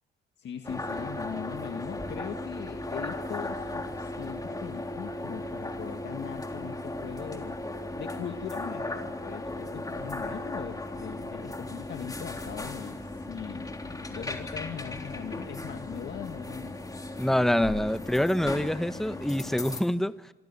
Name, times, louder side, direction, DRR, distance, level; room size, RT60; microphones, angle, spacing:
voice 1, 0.4-7.6 8.0-16.8, left 8 dB, 65° left, 5 dB, 1.9 m, -40 dB
sound 1, 0.6-19.8, left 2 dB, 20° left, 3.5 m, -36 dB
voice 2, 17.2-20.2, left 1 dB, ahead, 12 dB, 1.0 m, -26 dB
25.5 x 25.5 x 7.1 m, 1.1 s
cardioid pair, 90°, 20 cm